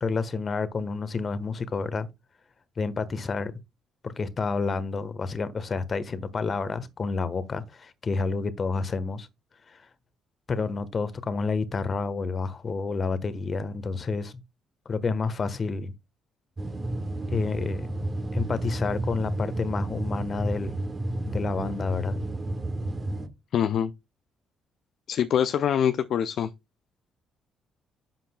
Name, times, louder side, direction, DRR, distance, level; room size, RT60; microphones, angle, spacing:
voice 1, 0.0-2.1 2.8-3.5 4.0-9.3 10.5-14.3 14.8-15.9 17.3-17.9 18.3-20.8 21.3-22.2, left 4 dB, 40° left, 1.3 m, -29 dB
sound 1, 16.6-23.3, right 1 dB, 30° right, 1.5 m, -31 dB
voice 2, 23.5-23.9 25.1-26.5, left 9 dB, 60° left, 0.5 m, -24 dB
11.5 x 7.5 x 2.3 m
hypercardioid pair, 45°, 0 cm